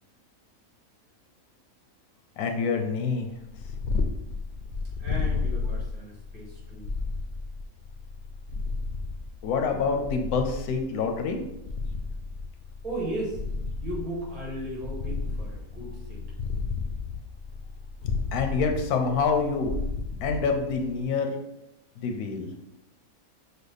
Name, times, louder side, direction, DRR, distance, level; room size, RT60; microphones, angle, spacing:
voice 1, 2.4-3.3 9.4-11.4 18.3-19.7 20.2-21.4 22.0-22.5, left 5 dB, 85° left, 4 dB, 1.2 m, -26 dB
Purr, 3.3-21.0, left 4 dB, 65° left, 0.7 m, -33 dB
voice 2, 5.0-6.9 12.8-13.4 13.8-16.2, right 1 dB, 80° right, -4 dB, 1.9 m, -36 dB
6.2 x 2.2 x 3.3 m, 0.89 s
omnidirectional pair, 1.5 m